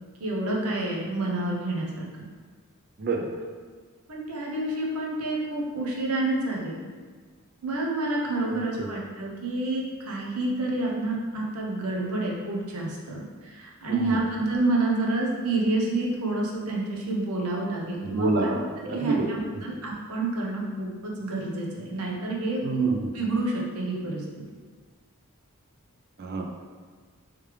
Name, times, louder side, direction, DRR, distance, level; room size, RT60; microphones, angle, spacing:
voice 1, 0.2-2.3 4.1-6.8 7.6-18.3 18.8-24.2, right 2 dB, 80° right, -2 dB, 0.8 m, -28 dB
voice 2, 3.0-3.4 8.5-8.9 13.9-14.2 18.0-19.3 22.6-23.1 26.2-26.5, right 3 dB, 45° right, 2 dB, 0.4 m, -28 dB
3.3 x 3.2 x 3.3 m, 1.5 s
head